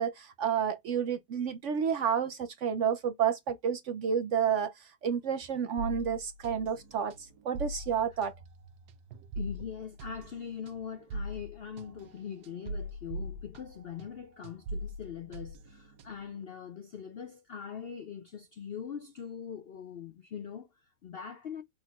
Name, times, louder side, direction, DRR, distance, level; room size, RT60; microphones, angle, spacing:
voice 1, 0.0-8.3, right 8 dB, 65° right, 0.8 m, -30 dB
sound 1, 5.8-14.2 14.4-16.4, right 1 dB, 80° right, 1.2 m, -41 dB
voice 2, 9.4-21.6, left 7 dB, 65° left, 0.5 m, -42 dB
5.8 x 3.9 x 2.3 m
omnidirectional pair, 1.7 m